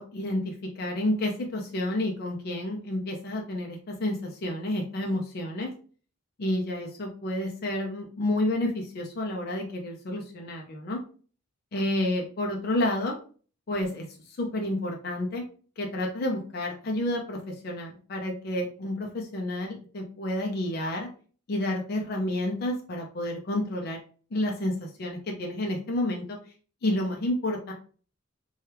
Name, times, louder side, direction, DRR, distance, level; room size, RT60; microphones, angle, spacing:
voice 1, 0.0-5.7 6.4-11.0 11.7-13.2 13.7-15.4 15.8-21.1 21.5-24.0 24.3-26.4 26.8-27.7, left 1 dB, 50° left, 1 dB, 0.5 m, -30 dB
3.2 x 2.3 x 2.9 m, 0.41 s
head